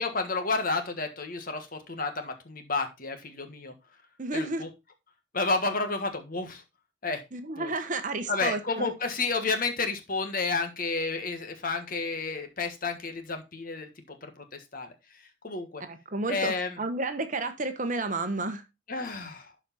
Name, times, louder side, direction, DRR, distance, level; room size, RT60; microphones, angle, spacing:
voice 1, 0.0-3.7 4.3-4.7 5.3-6.6 7.0-7.2 7.6-7.7 8.3-13.9 14.5-14.9 15.4-15.8 16.3-16.8 18.9-19.5, left 3 dB, 45° left, 6 dB, 1.6 m, -31 dB
voice 2, 4.2-4.6 7.3-8.9 15.9-18.6, right 2 dB, 40° right, 8 dB, 1.1 m, -31 dB
12.0 x 5.0 x 4.2 m, 0.25 s
head